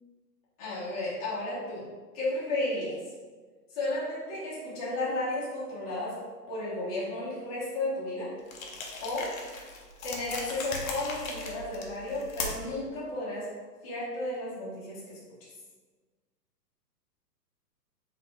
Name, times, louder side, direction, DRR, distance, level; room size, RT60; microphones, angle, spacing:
voice 1, 0.6-1.8 2.1-3.0 3.7-6.2 6.5-8.3 9.0-9.4 10.0-13.5 13.8-15.2, left 1 dB, 20° left, -8 dB, 1.1 m, -33 dB
sound 1, 8.5-12.8, left 3 dB, 55° left, 0.9 m, -38 dB
4.1 x 3.7 x 3.4 m, 1.4 s
hypercardioid pair, 175°, 49 cm